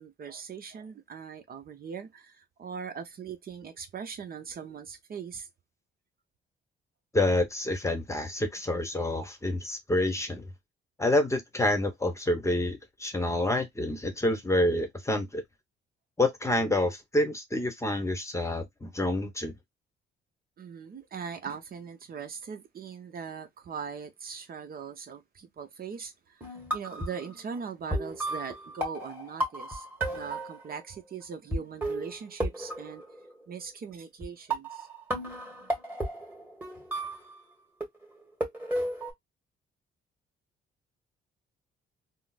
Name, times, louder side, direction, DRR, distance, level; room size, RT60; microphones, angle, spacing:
voice 1, 0.0-5.5 20.6-33.0 33.5-34.9, right 6 dB, 50° right, 0.7 m, -40 dB
voice 2, 7.1-10.4 11.0-15.4 16.2-19.5, left 1 dB, 15° left, 1.0 m, -28 dB
sound 1, 26.4-27.2 27.9-30.8 31.5-31.6 31.8-33.5 34.2-34.3 34.5-37.4 37.8-39.1, right 1 dB, 10° right, 1.7 m, -33 dB
3.7 x 2.0 x 2.4 m
cardioid pair, 90°, 20 cm